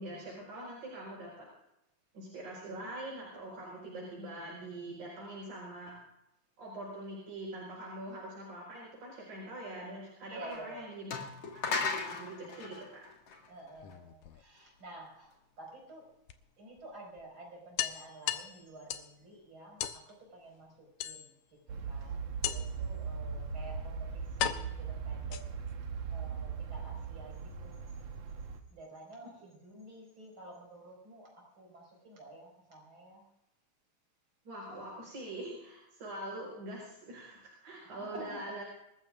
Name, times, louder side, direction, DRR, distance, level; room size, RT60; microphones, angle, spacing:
voice 1, 0.0-1.5 2.1-6.0 6.6-11.1 11.4-13.0 34.4-38.6, right 1 dB, 80° right, -5 dB, 6.3 m, -43 dB
voice 2, 10.3-10.9 13.5-16.1 16.6-21.3 21.7-25.4 26.1-27.8 28.7-33.3 37.8-38.5, right 1 dB, 40° right, -1 dB, 6.0 m, -50 dB
sound 1, 10.5-10.6 11.1-13.9, left 4 dB, 55° left, 3.0 m, -36 dB
sound 2, 13.7-14.8 16.3-16.4 16.8-16.9 17.2-17.3 17.8-19.2 19.8-20.0 21.0-21.6 22.4-22.9 23.7-23.8 24.4-25.8, left 11 dB, 80° left, 2.2 m, -37 dB
sound 3, 21.7-28.6, right 6 dB, 60° right, 2.2 m, -39 dB
26.0 x 14.5 x 2.5 m, 0.85 s
omnidirectional pair, 3.4 m